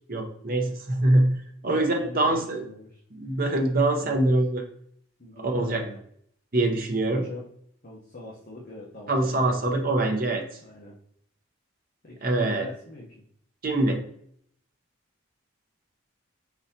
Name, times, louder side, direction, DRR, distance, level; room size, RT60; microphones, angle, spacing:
voice 1, 0.1-1.4 1.6-2.6 3.1-4.6 5.4-5.8 6.5-7.2 9.1-10.4 12.2-12.7 13.6-14.0, right 2 dB, 45° right, 3 dB, 0.8 m, -24 dB
voice 2, 1.6-3.0 4.0-4.2 5.2-6.0 7.0-7.5 7.8-9.8 10.6-11.0 12.0-13.2, left 1 dB, 40° left, -5 dB, 0.9 m, -42 dB
4.7 x 3.9 x 2.8 m, 0.66 s
head